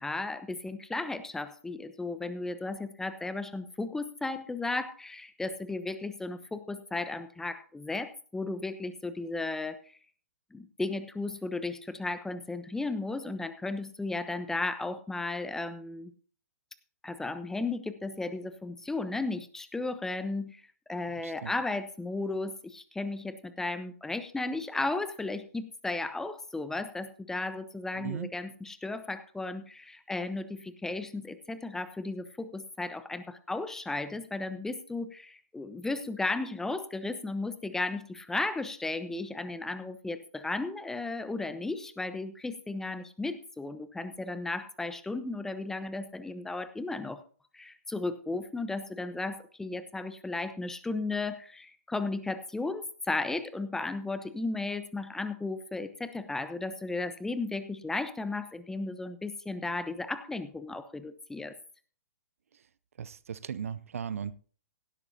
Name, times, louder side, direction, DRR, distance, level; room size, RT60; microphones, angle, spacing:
voice 1, 0.0-9.8 10.5-16.1 17.0-20.6 20.9-47.2 47.5-61.6, left 3 dB, 5° left, 1.0 m, -35 dB
voice 2, 28.0-28.3 63.0-64.3, right 7 dB, 65° right, 0.6 m, -37 dB
17.0 x 12.0 x 2.8 m
figure-of-eight pair, 120°, 8 cm